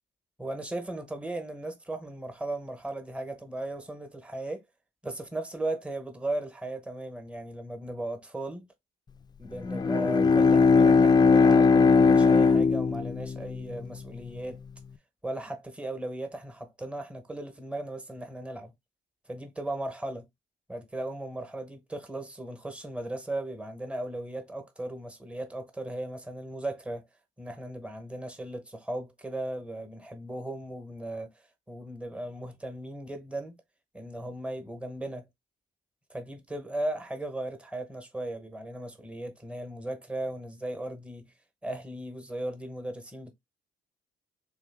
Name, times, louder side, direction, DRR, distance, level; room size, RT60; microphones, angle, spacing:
voice 1, 0.4-4.6 5.0-8.7 9.4-14.6 15.2-18.7 19.3-20.3 20.7-27.0 27.4-31.3 31.7-33.6 33.9-35.3 36.1-41.3 41.6-43.3, right 1 dB, 5° right, 1.0 m, -36 dB
Bowed string instrument, 9.6-14.2, left 4 dB, 20° left, 0.3 m, -20 dB
3.4 x 3.3 x 3.5 m
cardioid pair, 90°, 20 cm